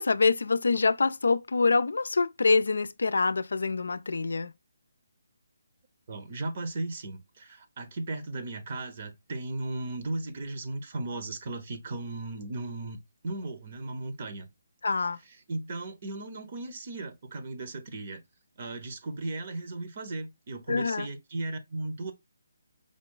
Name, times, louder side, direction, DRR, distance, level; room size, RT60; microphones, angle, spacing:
voice 1, 0.0-4.5 14.8-15.2 20.7-21.1, left 4 dB, 75° left, 0.3 m, -25 dB
voice 2, 6.1-13.0 13.2-14.5 15.5-18.2 18.6-22.1, right 2 dB, 40° right, 0.9 m, -36 dB
5.1 x 2.3 x 3.8 m
hypercardioid pair, 155°, 0 cm